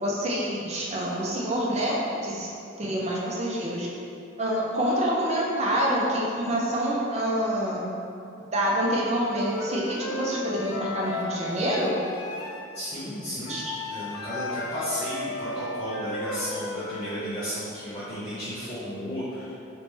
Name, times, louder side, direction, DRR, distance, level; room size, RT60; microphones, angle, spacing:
voice 1, 0.0-2.5 2.8-3.9 4.4-7.8 8.5-11.9 13.5-13.7, equal, 30° right, -3 dB, 0.5 m, -27 dB
Wind instrument woodwind instrument, 9.1-12.7 13.5-17.2, left 2 dB, 80° left, 0.4 m, -35 dB
voice 2, 12.7-13.6 13.9-19.5, equal, 30° left, -14 dB, 0.8 m, -33 dB
3.2 x 3.0 x 3.1 m, 2.6 s
head